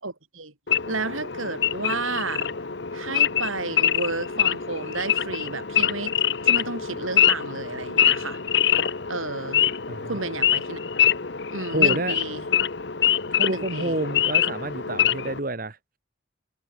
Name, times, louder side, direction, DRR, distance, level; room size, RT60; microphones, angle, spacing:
voice 1, 0.0-0.5 0.9-2.5 2.9-6.1 6.4-8.4 9.1-9.6 10.0-10.8 11.5-12.5 13.5-14.0, right 3 dB, 85° right, 6.1 m, -32 dB
Wild animals / Idling, 0.7-15.4, left 9 dB, 55° left, 1.0 m, -24 dB
voice 2, 9.9-10.2 11.7-12.2 13.3-15.8, right 2 dB, 45° right, 1.4 m, -29 dB
head